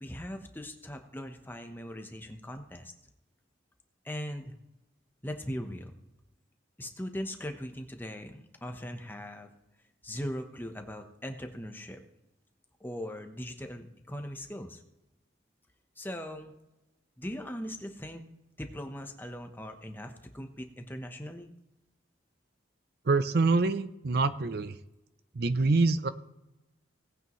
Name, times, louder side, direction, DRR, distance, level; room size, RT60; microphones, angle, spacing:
voice 1, 0.0-2.9 4.0-4.6 5.2-6.0 6.8-9.5 10.0-12.0 12.8-14.8 16.0-16.5 17.2-18.2 18.6-21.5, equal, 10° left, 5 dB, 0.9 m, -40 dB
voice 2, 23.1-24.8 25.4-26.1, right 3 dB, 55° right, 12 dB, 0.5 m, -25 dB
18.0 x 8.9 x 3.1 m, 0.94 s
head